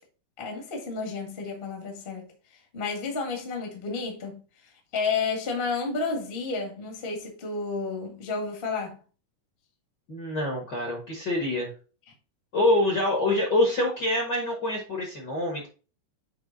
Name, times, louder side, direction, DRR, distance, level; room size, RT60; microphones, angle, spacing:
voice 1, 0.4-2.3 2.7-4.4 4.9-9.0, left 4 dB, 25° left, 1.3 m, -31 dB
voice 2, 10.1-11.7 12.5-15.7, left 1 dB, 45° left, 1.5 m, -25 dB
7.8 x 3.5 x 3.9 m
omnidirectional pair, 3.8 m